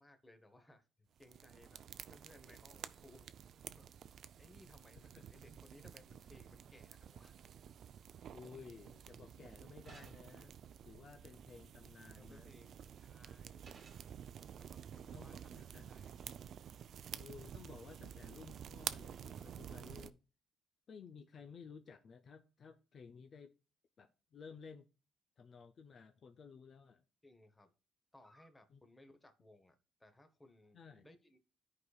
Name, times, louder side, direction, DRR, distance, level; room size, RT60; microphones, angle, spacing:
voice 1, 0.0-3.3 3.8-3.9 4.4-7.3 12.2-13.7 14.6-15.6 15.9-16.1 27.2-27.7 28.1-31.4, left 1 dB, 15° left, 1.0 m, -63 dB
sound 1, 1.2-20.1, right 8 dB, 55° right, 0.4 m, -51 dB
voice 2, 8.3-10.6 10.8-12.5 15.1-15.9 17.2-20.2 20.9-23.5 24.0-24.9 25.4-27.0 28.7-28.8 30.7-31.1, left 5 dB, 45° left, 0.5 m, -55 dB
sound 2, 9.8-10.5 12.5-12.9 13.6-14.2, right 4 dB, 40° right, 1.3 m, -60 dB
13.5 x 4.8 x 2.3 m
cardioid pair, 120°, 0 cm